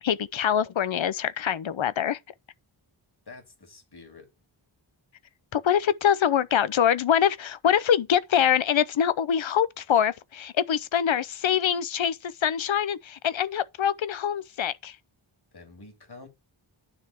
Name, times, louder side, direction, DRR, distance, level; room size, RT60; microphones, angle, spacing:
voice 1, 0.0-2.2 5.5-15.0, left 9 dB, 70° left, 0.7 m, -24 dB
voice 2, 3.3-4.3 15.5-16.3, left 3 dB, 50° left, 2.5 m, -47 dB
9.7 x 3.4 x 6.0 m
wide cardioid pair, 60°, 49 cm